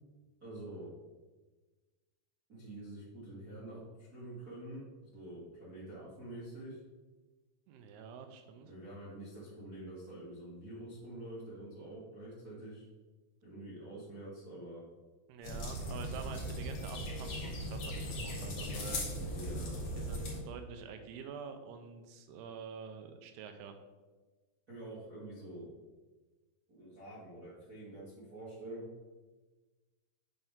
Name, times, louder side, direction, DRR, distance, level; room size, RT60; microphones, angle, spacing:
voice 1, 0.4-0.9 2.5-3.8 4.1-4.9 5.1-6.8 8.6-12.9 13.4-14.8 19.3-19.7 24.7-25.7 26.7-28.9, right 1 dB, 60° right, -9 dB, 0.9 m, -47 dB
voice 2, 7.7-8.7 15.3-19.0 20.0-23.8, right 6 dB, 80° right, 7 dB, 2.5 m, -47 dB
sound 1, 15.4-20.4, equal, 55° left, 1.9 m, -38 dB
8.1 x 5.6 x 3.6 m, 1.3 s
omnidirectional pair, 4.9 m